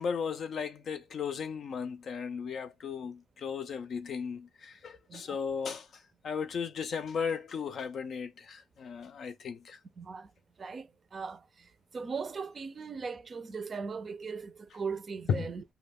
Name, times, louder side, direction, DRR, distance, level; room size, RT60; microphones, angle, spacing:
voice 1, 0.0-9.8 15.3-15.5, left 6 dB, 55° left, 0.4 m, -36 dB
voice 2, 10.0-10.3 10.6-15.6, right 5 dB, 40° right, 0.4 m, -39 dB
2.2 x 2.2 x 3.3 m
cardioid pair, 90°, 0 cm